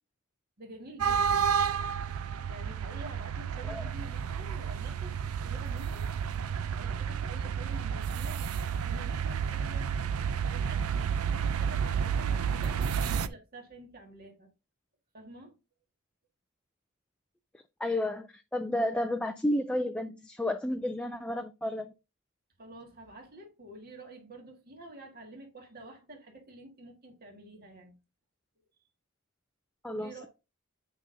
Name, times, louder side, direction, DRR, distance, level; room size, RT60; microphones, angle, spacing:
voice 1, 0.6-1.6 2.5-6.1 6.6-8.5 8.8-9.9 10.4-14.5 15.1-15.6 22.6-28.0 29.9-30.3, right 2 dB, 45° right, 1.7 m, -48 dB
sound 1, 1.0-13.3, right 7 dB, 75° right, 0.5 m, -31 dB
voice 2, 17.8-21.9 29.8-30.3, left 1 dB, 5° left, 0.3 m, -31 dB
8.4 x 5.2 x 2.7 m
head